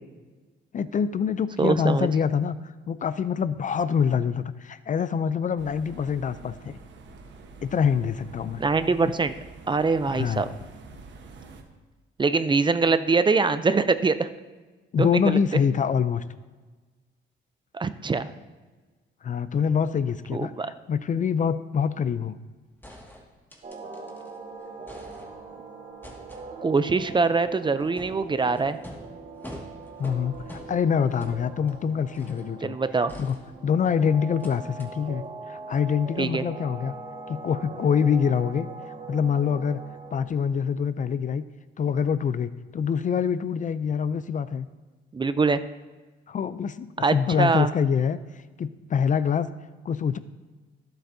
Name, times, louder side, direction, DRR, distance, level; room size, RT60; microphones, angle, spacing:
voice 1, 0.7-2.6 2.9-6.8 7.6-8.6 10.1-10.4 14.9-16.2 19.2-20.5 20.9-22.4 30.0-32.8 33.2-33.3 33.6-37.0 37.3-38.7 39.1-39.8 40.1-41.4 41.8-44.7 46.3-48.2 48.6-49.5 49.8-50.2, left 7 dB, 40° left, 14 dB, 0.4 m, -25 dB
voice 2, 1.6-2.1 8.6-9.3 9.7-10.5 12.2-14.3 15.0-15.4 17.7-18.3 20.3-20.7 26.6-28.8 32.6-33.1 36.2-36.4 45.1-45.6 47.0-47.7, right 4 dB, 25° right, 12 dB, 0.5 m, -23 dB
sound 1, 5.6-11.6, right 3 dB, 65° right, 1.2 m, -46 dB
sound 2, 22.8-24.4 24.7-25.6 26.0-32.6 33.1-33.9 34.4-34.5 34.8-34.9, equal, 10° left, 2.0 m, -46 dB
sound 3, 23.6-40.3, right 4 dB, 40° right, 1.7 m, -41 dB
15.5 x 7.7 x 2.7 m, 1.3 s
cardioid pair, 90°, 20 cm